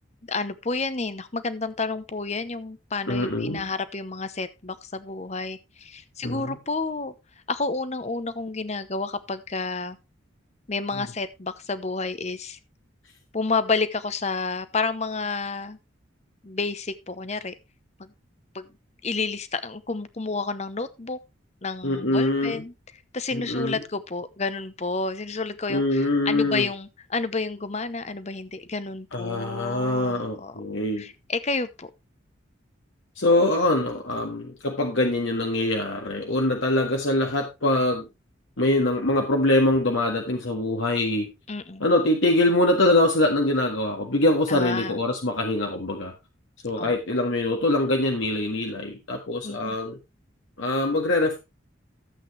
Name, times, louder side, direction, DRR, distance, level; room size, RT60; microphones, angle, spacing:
voice 1, 0.2-7.1 7.5-10.0 10.7-12.6 13.3-15.8 16.4-17.5 18.0-18.1 18.5-18.7 19.0-21.2 21.6-22.7 23.1-30.5 31.0-31.9 41.5-41.8 44.5-45.0 46.8-46.9 49.4-49.8, left 3 dB, 35° left, 13 dB, 0.8 m, -30 dB
voice 2, 3.1-3.6 6.2-6.6 21.8-22.6 23.3-23.8 25.7-26.7 29.1-31.1 33.2-38.1 38.6-41.3 41.8-46.1 46.6-50.0 50.6-51.4, left 1 dB, 70° left, 1 dB, 1.7 m, -23 dB
13.0 x 8.2 x 3.2 m, 0.24 s
head